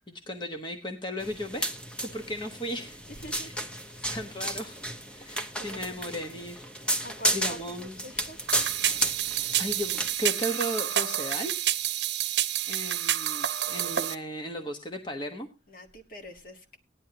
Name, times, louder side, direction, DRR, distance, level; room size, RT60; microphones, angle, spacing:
voice 1, 0.0-1.7 2.0-3.0 3.3-3.5 4.0-4.8 5.1-6.7 7.3-8.1 9.2-11.6 12.7-15.5, equal, 25° left, 1.1 m, -36 dB
sound 1, 1.2-10.1, right 1 dB, 5° left, 0.8 m, -33 dB
voice 2, 3.1-3.7 5.0-5.2 5.6-6.0 7.0-8.4 15.7-16.8, right 1 dB, 50° left, 1.7 m, -45 dB
sound 2, 8.5-14.1, right 12 dB, 65° right, 0.8 m, -29 dB
17.0 x 10.5 x 2.9 m
head